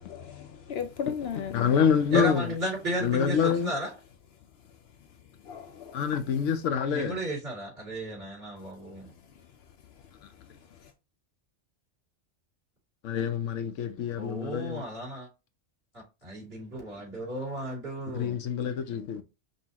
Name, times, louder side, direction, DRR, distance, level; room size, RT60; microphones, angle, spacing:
voice 1, 0.0-1.8 4.3-6.3 8.6-10.9, left 8 dB, 65° left, 0.8 m, -40 dB
voice 2, 1.5-2.5 3.0-3.7 5.9-7.2 13.0-14.8 18.1-19.2, left 7 dB, 90° left, 1.0 m, -26 dB
voice 3, 2.1-3.9 6.9-9.1 14.2-15.3 16.2-18.3, right 1 dB, 55° right, 3.1 m, -34 dB
5.4 x 2.7 x 2.9 m
omnidirectional pair, 1.2 m